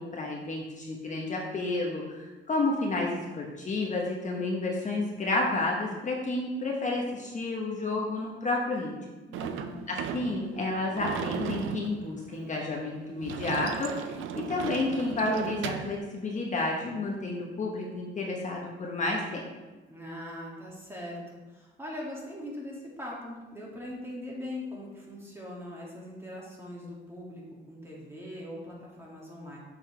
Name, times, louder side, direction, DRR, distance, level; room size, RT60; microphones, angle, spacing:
voice 1, 0.0-8.9 9.9-19.4, left 2 dB, 40° left, -2 dB, 1.2 m, -31 dB
voice 2, 9.3-9.8 19.9-27.4 27.7-29.6, left 1 dB, 10° right, -4 dB, 2.2 m, -41 dB
Sliding door / Slam, 9.3-16.0, right 8 dB, 85° right, 0.5 m, -36 dB
7.0 x 5.6 x 3.4 m, 1.2 s
cardioid pair, 90°, 20 cm